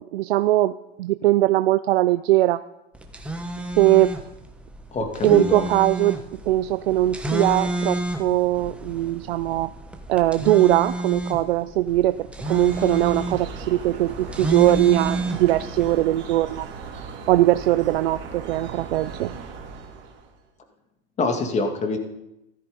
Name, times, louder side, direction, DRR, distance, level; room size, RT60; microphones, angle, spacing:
voice 1, 0.0-2.6 3.8-4.2 5.2-9.7 10.1-16.7 17.3-19.3, right 15 dB, 70° right, 12 dB, 0.6 m, -20 dB
sound 1, 2.9-15.9, right 2 dB, 5° right, 1.3 m, -31 dB
voice 2, 4.9-5.7 21.2-22.0, left 3 dB, 20° left, 5 dB, 2.3 m, -25 dB
sound 2, 12.4-20.4, right 4 dB, 35° right, 3.2 m, -37 dB
15.0 x 13.0 x 5.3 m, 0.89 s
hypercardioid pair, 125°, 31 cm